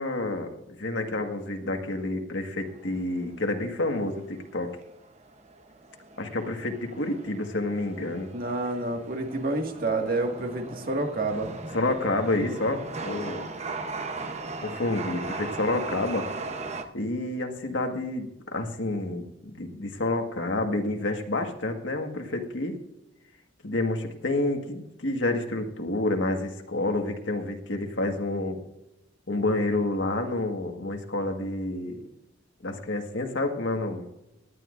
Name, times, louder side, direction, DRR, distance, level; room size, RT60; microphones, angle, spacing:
voice 1, 0.0-4.8 6.2-8.3 11.7-13.5 14.6-16.3 16.9-22.8 23.6-28.6 29.3-32.0 32.6-34.1, left 2 dB, 80° left, 4 dB, 1.7 m, -29 dB
Chatter / Subway metro underground, 2.6-16.8, right 3 dB, 35° right, 0.9 m, -38 dB
voice 2, 8.3-11.5, right 2 dB, 50° right, 2 dB, 2.0 m, -28 dB
18.0 x 11.5 x 2.6 m, 0.90 s
head